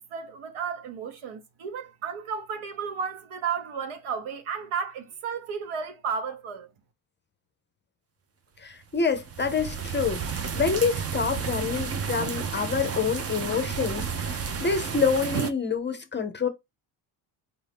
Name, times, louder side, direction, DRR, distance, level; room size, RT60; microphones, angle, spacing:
voice 1, 0.0-6.7, right 6 dB, 75° right, 1.2 m, -33 dB
voice 2, 8.6-16.5, left 5 dB, 25° left, 0.5 m, -27 dB
sound 1, 9.0-15.5, right 6 dB, 30° right, 0.5 m, -32 dB
4.6 x 2.6 x 3.3 m
cardioid pair, 140°, 49 cm